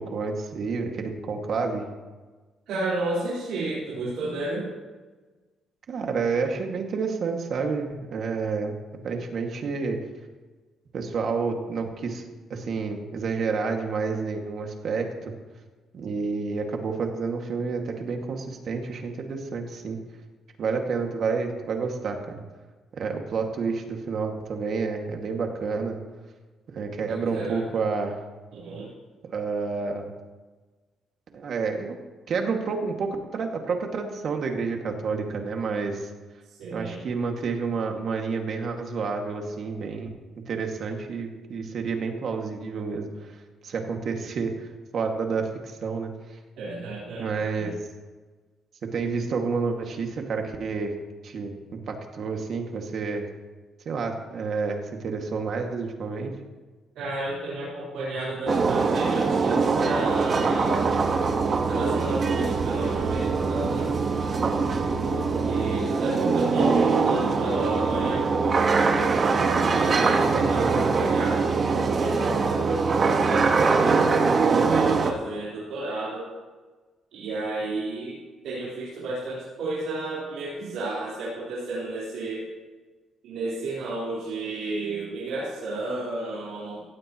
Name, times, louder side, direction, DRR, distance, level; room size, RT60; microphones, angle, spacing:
voice 1, 0.0-1.9 5.9-8.7 9.0-10.0 10.9-12.2 12.5-15.3 15.9-20.0 20.6-22.4 22.9-26.0 26.7-28.2 29.3-30.1 31.3-32.0 32.3-36.1 36.7-40.1 40.5-46.4 47.2-47.7 48.8-50.9 51.2-51.5 51.9-53.3 53.9-56.4 65.6-65.9 69.9-70.9, right 4 dB, 60° right, 3 dB, 2.1 m, -29 dB
voice 2, 2.7-4.7 27.1-27.6 28.5-28.9 36.5-37.1 46.6-47.3 47.6-47.7 57.0-60.9 61.7-64.0 65.0-68.8 69.7-76.3 77.1-78.2 78.4-82.5 83.2-86.8, right 2 dB, 85° right, -9 dB, 4.2 m, -32 dB
sound 1, 58.5-75.1, right 4 dB, 45° right, 1.4 m, -23 dB
17.0 x 16.0 x 3.1 m, 1.3 s
cardioid pair, 90°, 0 cm